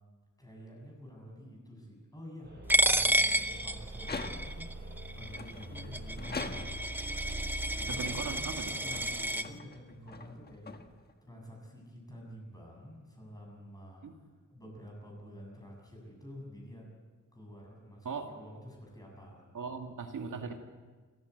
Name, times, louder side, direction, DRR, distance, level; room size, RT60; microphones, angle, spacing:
voice 1, 0.4-6.7 7.6-8.0 8.7-14.1 14.5-16.9 17.3-19.4, equal, 10° left, -1 dB, 7.5 m, -49 dB
sound 1, 2.4-9.3, right 1 dB, 30° right, 6.4 m, -43 dB
Coin (dropping), 2.7-9.4, right 1 dB, 5° right, 0.7 m, -31 dB
sound 2, 3.9-4.8 5.3-7.0 7.7-11.3, left 4 dB, 30° left, 1.3 m, -44 dB
voice 2, 7.9-8.7 14.0-14.1 18.0-18.3 19.5-20.6, right 5 dB, 70° right, 3 dB, 2.0 m, -39 dB
28.5 x 15.0 x 8.0 m, 1.4 s
wide cardioid pair, 175°, 32 cm